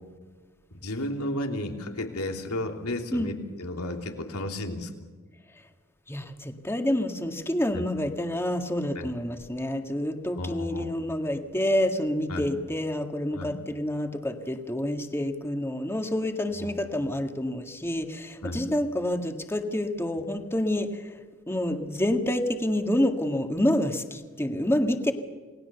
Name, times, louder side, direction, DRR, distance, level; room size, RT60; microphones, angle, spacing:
voice 1, 0.7-4.9 7.7-7.8 8.9-9.1 10.4-11.0 12.3-12.5 13.3-13.5 16.6-16.7 18.4-18.6, left 1 dB, 85° left, 3 dB, 3.2 m, -33 dB
voice 2, 6.1-21.2 21.5-25.1, left 1 dB, 10° left, 5 dB, 1.8 m, -28 dB
29.0 x 19.5 x 7.0 m, 1.5 s
head